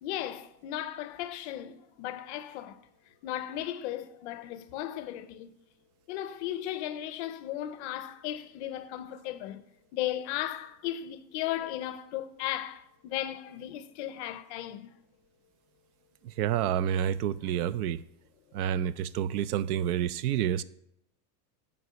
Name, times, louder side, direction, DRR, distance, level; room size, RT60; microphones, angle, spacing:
voice 1, 0.0-2.8 3.2-5.5 6.1-9.6 9.9-14.9, left 12 dB, 45° left, 0.6 m, -36 dB
voice 2, 16.2-18.0 18.5-20.6, right 10 dB, 65° right, 0.6 m, -29 dB
9.6 x 5.3 x 6.9 m
supercardioid pair, 175°, 50 cm